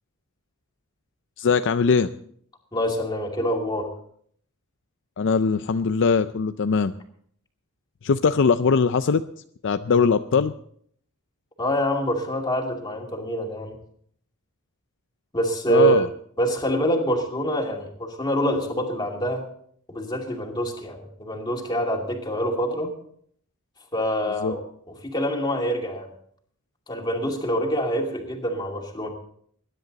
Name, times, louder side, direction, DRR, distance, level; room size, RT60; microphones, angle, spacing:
voice 1, 1.4-2.1 5.2-6.9 8.0-9.2 9.6-10.5 15.7-16.1 24.4-24.6, left 5 dB, 60° left, 10 dB, 0.5 m, -21 dB
voice 2, 2.7-3.9 11.6-13.8 15.3-16.1 16.4-19.4 19.9-22.9 23.9-24.6 24.9-26.1 26.9-29.1, right 1 dB, 20° left, 1 dB, 2.6 m, -25 dB
21.0 x 11.0 x 4.0 m, 0.63 s
head